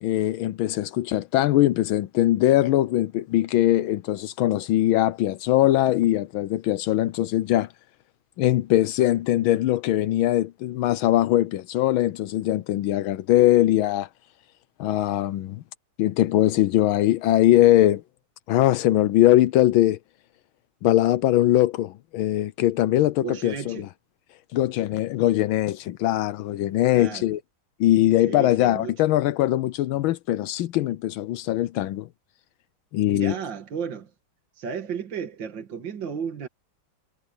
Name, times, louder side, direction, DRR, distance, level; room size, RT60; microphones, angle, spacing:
voice 1, 0.0-7.7 8.4-14.1 14.8-15.6 16.0-18.0 18.5-20.0 20.8-23.9 24.5-27.4 27.8-32.1 32.9-33.3, left 14 dB, 85° left, 1.5 m, -21 dB
voice 2, 23.2-23.9 26.9-27.3 28.3-28.9 33.1-34.1 34.6-36.5, right 7 dB, 65° right, 2.6 m, -33 dB
omnidirectional pair, 2.2 m